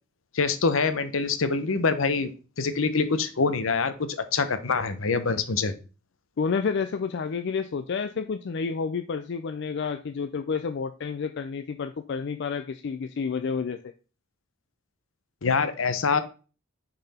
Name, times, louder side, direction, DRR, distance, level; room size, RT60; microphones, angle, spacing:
voice 1, 0.3-2.3 2.6-5.7 15.4-16.2, left 4 dB, 75° left, 11 dB, 0.8 m, -25 dB
voice 2, 6.4-13.8, left 5 dB, 60° left, 8 dB, 0.4 m, -30 dB
6.5 x 4.1 x 4.2 m, 0.34 s
head